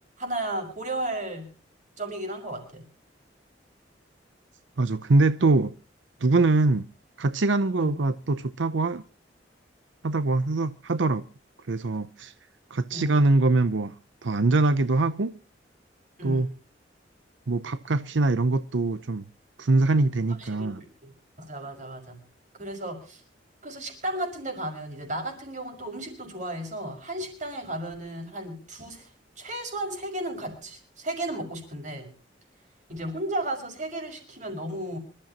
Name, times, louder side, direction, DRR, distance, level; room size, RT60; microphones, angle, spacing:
voice 1, 0.2-1.5 2.0-2.8 7.8-7.9 12.9-13.2 16.2-16.5 20.3-20.7 21.0-21.1 21.4-22.2 22.6-23.2 23.6-29.1 29.4-32.1 32.9-35.0, right 1 dB, 40° right, 5.8 m, -34 dB
voice 2, 4.8-5.7 6.2-6.9 7.2-9.0 10.0-11.2 11.7-12.3 12.7-13.9 14.2-15.3 16.2-16.5 17.5-19.2 19.6-20.8, right 3 dB, 90° right, 0.7 m, -23 dB
26.0 x 13.5 x 2.9 m
head